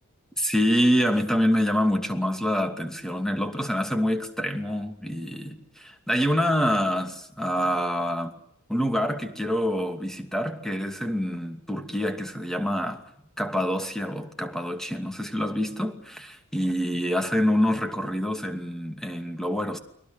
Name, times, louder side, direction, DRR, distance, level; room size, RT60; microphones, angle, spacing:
voice 1, 0.4-8.4 8.7-13.0 13.4-19.8, equal, ahead, 2.5 m, -26 dB
30.0 x 22.5 x 6.1 m
head